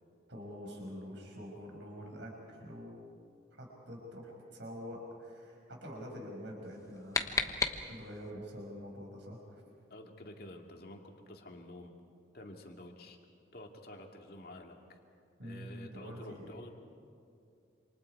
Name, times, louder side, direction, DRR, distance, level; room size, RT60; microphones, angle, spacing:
voice 1, 0.3-3.1 3.6-7.4 7.8-9.6 15.4-16.5, equal, 70° right, 0 dB, 5.6 m, -46 dB
sound 1, 6.6-8.3, left 3 dB, 15° left, 1.0 m, -35 dB
voice 2, 9.9-11.0 11.3-11.9 12.3-13.2 13.5-15.0 15.4-16.7, left 1 dB, 50° left, 2 dB, 2.3 m, -49 dB
27.5 x 27.5 x 4.7 m, 2.5 s
head